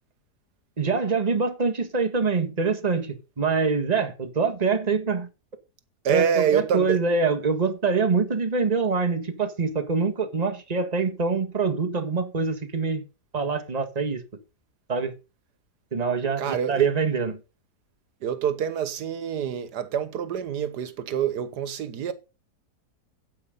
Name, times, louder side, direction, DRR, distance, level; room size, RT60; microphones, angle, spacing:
voice 1, 0.8-5.3 6.1-13.0 13.3-14.2 14.9-15.1 15.9-17.3, right 4 dB, 25° right, 1.6 m, -25 dB
voice 2, 6.0-7.0 16.4-16.9 18.2-22.1, right 8 dB, 85° right, 1.6 m, -26 dB
9.7 x 8.6 x 5.3 m
omnidirectional pair, 1.7 m